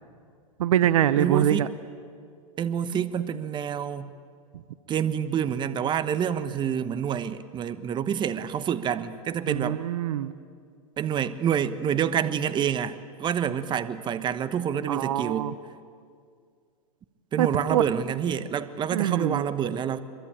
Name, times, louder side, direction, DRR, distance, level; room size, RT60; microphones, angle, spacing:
voice 1, 0.6-1.7 9.5-10.3 14.9-15.5 17.4-17.8 18.9-19.4, right 11 dB, 70° right, 1.0 m, -24 dB
voice 2, 1.2-1.7 2.6-4.1 4.9-9.8 11.0-15.5 17.3-20.0, right 8 dB, 25° right, 1.1 m, -27 dB
25.0 x 23.0 x 8.8 m
hypercardioid pair, 105°, 18 cm